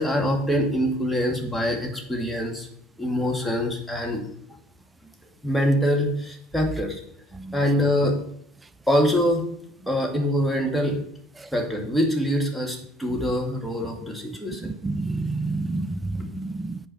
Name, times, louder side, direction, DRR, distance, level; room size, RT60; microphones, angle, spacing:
voice 1, 0.0-2.7 3.0-4.3 5.4-7.0 7.5-8.2 8.9-9.4 9.9-11.0 11.5-14.7, equal, 5° left, 2.2 m, -24 dB
voice 2, 14.6-16.8, right 3 dB, 15° right, 0.5 m, -29 dB
8.8 x 4.7 x 5.8 m
hypercardioid pair, 80°, 0 cm